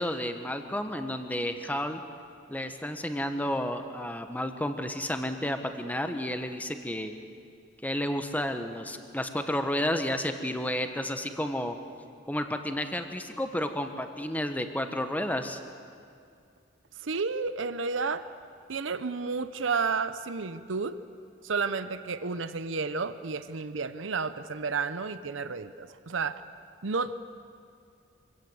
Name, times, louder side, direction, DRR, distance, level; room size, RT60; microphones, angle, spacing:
voice 1, 0.0-2.0 2.5-7.1 7.8-11.8 12.3-15.6, left 1 dB, 10° left, 7 dB, 1.2 m, -31 dB
voice 2, 17.0-18.3 18.7-21.0 21.4-26.4 26.8-27.1, right 4 dB, 80° right, 12 dB, 0.8 m, -31 dB
25.0 x 16.5 x 7.9 m, 2.4 s
head